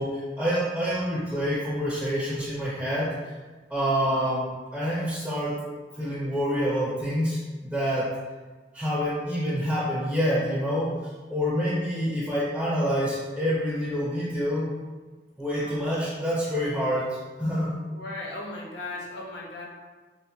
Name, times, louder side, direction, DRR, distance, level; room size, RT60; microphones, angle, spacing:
voice 1, 0.0-3.3 3.7-5.6 5.9-8.1 8.7-10.9 11.3-14.7 15.4-17.7, equal, 5° right, -10 dB, 0.8 m, -27 dB
voice 2, 15.6-16.1 17.9-19.6, left 2 dB, 65° left, -2 dB, 0.7 m, -37 dB
4.3 x 2.1 x 3.0 m, 1.3 s
head